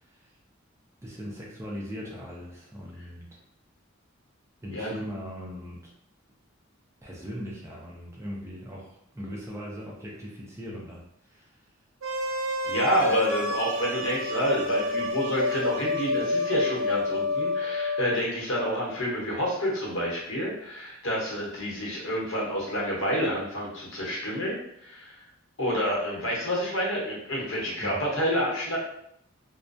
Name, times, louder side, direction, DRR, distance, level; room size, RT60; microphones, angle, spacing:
voice 1, 1.0-3.4 4.6-5.9 7.0-11.0 11.3-11.5 21.7-21.8 27.8-28.0, equal, 15° right, -3 dB, 0.4 m, -39 dB
sound 1, 12.0-18.2, left 2 dB, 75° right, 0.5 m, -28 dB
voice 2, 12.6-25.2 25.6-28.8, equal, 70° left, -4 dB, 0.9 m, -28 dB
2.3 x 2.1 x 2.5 m, 0.73 s
head